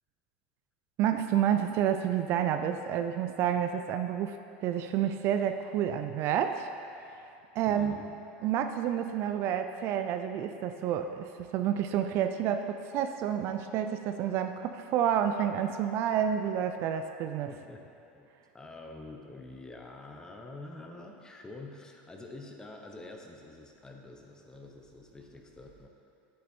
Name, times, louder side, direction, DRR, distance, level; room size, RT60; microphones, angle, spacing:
voice 1, 1.0-6.7 7.6-8.0 8.4-17.5, right 9 dB, 45° right, 8 dB, 0.4 m, -29 dB
voice 2, 7.7-8.1 17.5-17.8 18.1-18.3 18.5-25.9, left 2 dB, 10° left, 2 dB, 1.0 m, -47 dB
10.5 x 8.6 x 4.5 m, 2.7 s
supercardioid pair, 140°, 6 cm